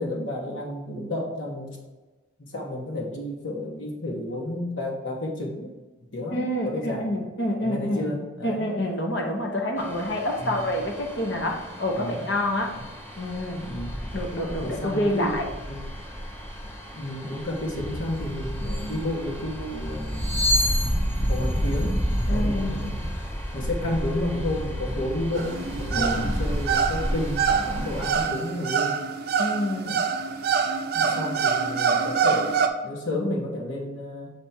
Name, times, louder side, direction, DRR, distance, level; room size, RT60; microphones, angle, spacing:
voice 1, 0.0-1.8 2.4-5.7 6.1-7.2 7.6-8.7 10.4-10.7 11.9-12.2 13.6-13.9 14.6-15.9 16.9-20.5 21.3-22.0 22.3-23.1 23.5-29.0 29.8-30.0 30.9-34.3, left 1 dB, 75° left, -3 dB, 1.4 m, -31 dB
voice 2, 6.3-12.7 13.2-13.7 14.1-15.5 22.3-22.8 25.9-26.4 29.4-30.0 31.0-31.2, left 1 dB, 60° left, 1 dB, 1.0 m, -28 dB
sound 1, 9.8-28.3, equal, 10° left, 0.7 m, -31 dB
sound 2, 18.1-18.2 18.5-19.0 19.9-23.0 25.3-25.6 26.4-26.7 27.1-28.6, left 1 dB, 30° left, 1.2 m, -32 dB
sound 3, 25.3-32.7, right 6 dB, 50° right, 0.5 m, -25 dB
7.3 x 3.5 x 4.3 m, 1.2 s
head